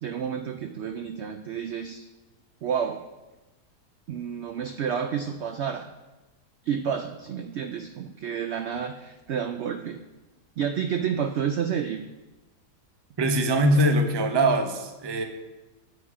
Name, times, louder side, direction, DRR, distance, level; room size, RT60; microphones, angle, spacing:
voice 1, 0.0-2.1 2.6-3.0 4.1-5.9 6.7-10.0 10.6-12.0, right 7 dB, 75° right, 6 dB, 0.6 m, -30 dB
voice 2, 13.2-15.2, right 1 dB, 30° right, 5 dB, 0.5 m, -22 dB
8.0 x 7.9 x 4.9 m, 1.1 s
omnidirectional pair, 1.7 m